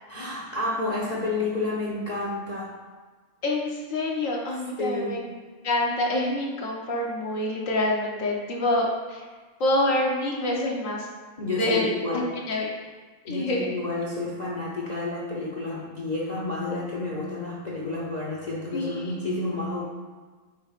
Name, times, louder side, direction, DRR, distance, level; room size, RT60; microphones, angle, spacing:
voice 1, 0.1-2.7 4.8-5.2 11.4-12.3 13.3-19.9, left 2 dB, 40° left, -3 dB, 0.7 m, -30 dB
voice 2, 3.4-5.3 5.6-9.3 9.6-11.1 11.6-11.9 12.1-12.2 12.5-12.7 13.2-13.7 18.7-19.2, left 1 dB, 65° left, -1 dB, 1.2 m, -26 dB
9.2 x 5.4 x 2.5 m, 1.4 s
omnidirectional pair, 1.5 m